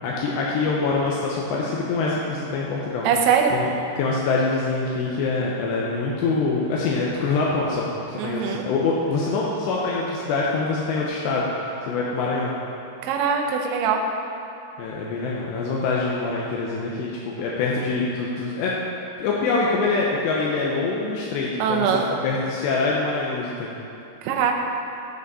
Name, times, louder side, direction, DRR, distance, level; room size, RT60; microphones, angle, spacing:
voice 1, 0.0-3.1 3.5-3.7 4.0-12.5 14.8-18.7 19.2-21.9 22.2-23.7, left 3 dB, 85° left, -4 dB, 2.5 m, -25 dB
voice 2, 3.0-3.5 8.2-8.7 13.0-14.0 21.6-22.1 24.2-24.5, right 7 dB, 80° right, 1 dB, 2.8 m, -22 dB
12.5 x 5.4 x 4.1 m, 2.8 s
omnidirectional pair, 5.8 m